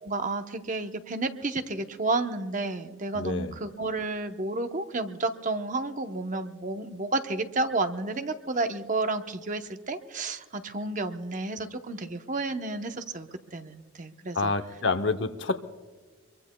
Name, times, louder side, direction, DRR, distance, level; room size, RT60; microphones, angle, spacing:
voice 1, 0.0-14.5, right 2 dB, 40° right, 7 dB, 0.8 m, -31 dB
voice 2, 3.1-3.6 14.3-15.6, left 3 dB, 60° left, 10 dB, 0.7 m, -28 dB
24.0 x 23.5 x 2.2 m, 1.4 s
head